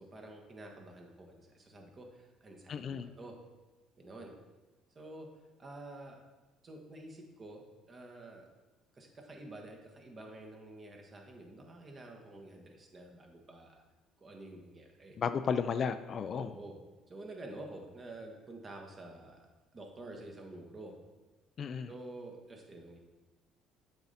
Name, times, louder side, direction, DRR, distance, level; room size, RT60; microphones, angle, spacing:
voice 1, 0.0-3.3 4.0-4.3 4.9-5.3 5.6-6.2 6.6-7.6 7.9-8.5 8.9-13.8 14.2-15.2 16.3-16.8 17.1-19.5 19.7-20.9 21.9-23.0, right 2 dB, 35° right, 2 dB, 1.3 m, -49 dB
voice 2, 2.7-3.1 15.2-16.5 21.6-21.9, left 6 dB, 50° left, 11 dB, 0.3 m, -33 dB
6.9 x 3.9 x 4.1 m, 1.2 s
hypercardioid pair, 65°, 0 cm